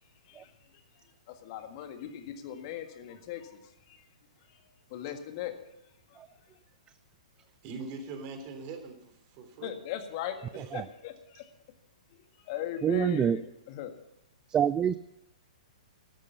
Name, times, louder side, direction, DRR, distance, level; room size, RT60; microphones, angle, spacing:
voice 1, 0.3-3.6 3.9-4.0 4.5-4.6 4.9-5.7 6.1-6.2 9.6-11.5 12.4-13.9, left 10 dB, 45° left, 7 dB, 1.7 m, -39 dB
voice 2, 7.6-9.8 10.5-10.8, right 4 dB, 40° right, 6 dB, 3.2 m, -42 dB
voice 3, 12.8-13.4 14.5-15.0, right 8 dB, 20° right, 15 dB, 0.4 m, -26 dB
13.0 x 13.0 x 5.6 m, 0.81 s
figure-of-eight pair, 115°, 4 cm